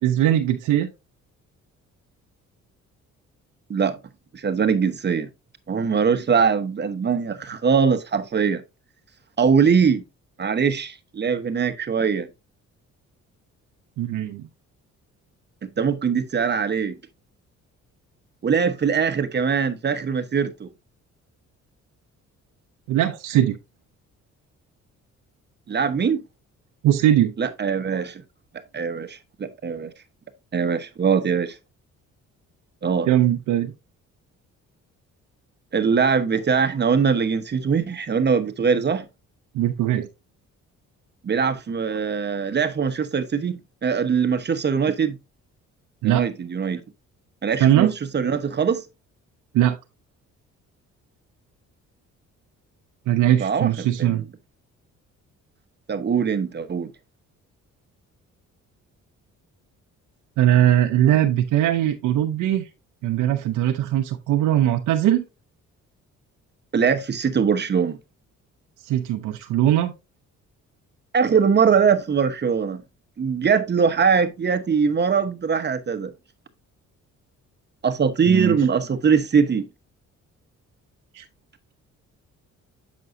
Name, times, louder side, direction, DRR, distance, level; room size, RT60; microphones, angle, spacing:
voice 1, 0.0-0.9 14.0-14.5 22.9-23.6 26.8-27.3 33.1-33.7 39.5-40.1 46.0-46.2 47.6-47.9 49.5-49.8 53.1-54.2 60.4-62.7 63.0-65.2 68.8-69.9 78.3-78.5 81.1-81.2, right 12 dB, 85° right, 0.7 m, -20 dB
voice 2, 4.3-5.3 5.7-8.6 9.4-10.1 10.4-12.3 15.6-17.0 18.4-20.7 25.7-26.2 27.4-28.2 28.7-29.9 30.5-31.5 32.8-33.1 35.7-39.1 41.2-45.2 46.0-46.8 47.4-48.8 53.4-54.3 55.9-56.9 66.7-68.0 71.1-72.8 73.2-76.1 77.8-79.7, right 6 dB, 35° right, 1.0 m, -22 dB
7.7 x 6.1 x 2.6 m
cardioid pair, 90°, 30 cm